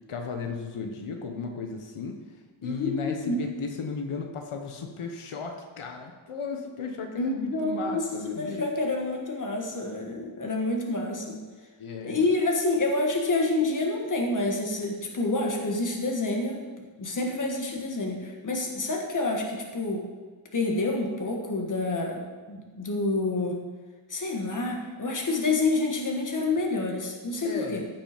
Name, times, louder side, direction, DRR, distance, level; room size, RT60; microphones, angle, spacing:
voice 1, 0.1-2.2 2.6-8.6 11.8-12.3 27.4-27.8, left 5 dB, 90° left, 3 dB, 1.3 m, -35 dB
voice 2, 2.6-3.4 7.2-8.0 8.4-11.4 12.0-16.6 17.0-20.0 20.5-23.6 24.1-27.8, left 2 dB, 40° left, 1 dB, 1.7 m, -28 dB
15.0 x 6.0 x 5.1 m, 1.4 s
wide cardioid pair, 165°, 49 cm